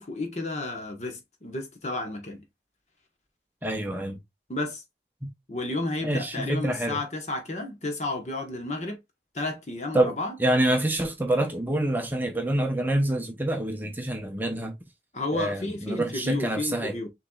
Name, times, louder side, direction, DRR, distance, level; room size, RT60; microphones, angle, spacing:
voice 1, 0.0-2.4 4.5-4.8 5.5-9.0 9.3-10.4 15.1-17.1, left 2 dB, 40° left, 1.1 m, -32 dB
voice 2, 3.6-4.2 5.2-5.3 6.0-7.0 9.9-10.1 10.4-14.8 15.3-17.0, right 1 dB, 10° right, 0.6 m, -26 dB
6.7 x 3.1 x 2.3 m
head